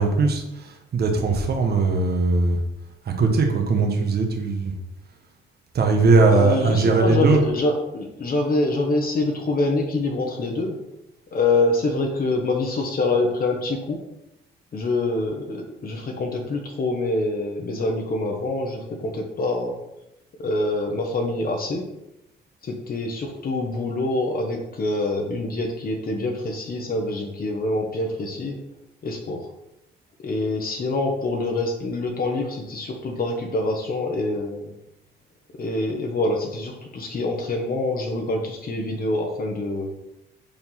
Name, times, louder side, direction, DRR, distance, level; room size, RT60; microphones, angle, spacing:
voice 1, 0.0-2.6 3.0-4.7 5.7-7.4, right 4 dB, 55° right, 3 dB, 1.3 m, -20 dB
voice 2, 6.3-10.8 11.3-14.0 14.7-19.7 20.4-21.8 22.6-28.6 29.0-29.5 30.2-34.7 35.6-39.9, left 2 dB, 50° left, 1 dB, 1.2 m, -25 dB
5.2 x 4.7 x 5.7 m, 0.86 s
cardioid pair, 90°, 20 cm